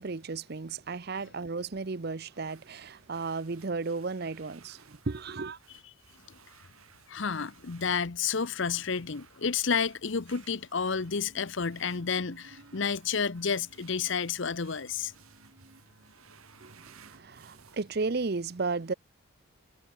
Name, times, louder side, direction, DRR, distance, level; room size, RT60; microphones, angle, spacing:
voice 1, 0.0-5.6 16.6-18.9, right 4 dB, 45° right, 0.6 m, -34 dB
foot dirt tunnell, 2.2-17.8, right 7 dB, 85° right, 6.5 m, -60 dB
voice 2, 7.1-15.1, left 6 dB, 55° left, 0.8 m, -30 dB
sound 1, 10.7-17.2, right 2 dB, 65° right, 2.1 m, -58 dB
head